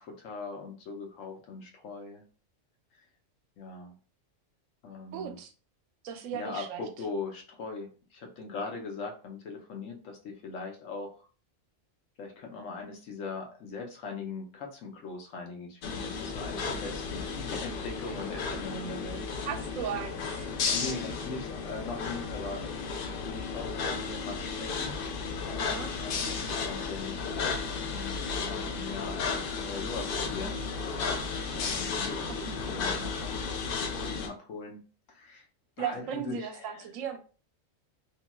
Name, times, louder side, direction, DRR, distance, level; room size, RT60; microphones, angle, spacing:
voice 1, 0.0-2.2 3.6-3.9 4.8-5.4 6.3-11.3 12.2-19.4 20.7-22.9 23.2-25.0 25.8-30.6 31.5-33.6 33.9-34.8 35.1-35.5 35.8-36.8, left 4 dB, 80° left, 2 dB, 1.1 m, -40 dB
voice 2, 5.1-5.5 6.0-6.8 19.4-20.5 25.6-25.9 32.0-32.4 35.8-37.2, right 8 dB, 85° right, 7 dB, 1.0 m, -37 dB
sound 1, 15.8-34.3, left 5 dB, 65° left, 0.5 m, -34 dB
2.9 x 2.8 x 2.2 m, 0.37 s
omnidirectional pair, 1.3 m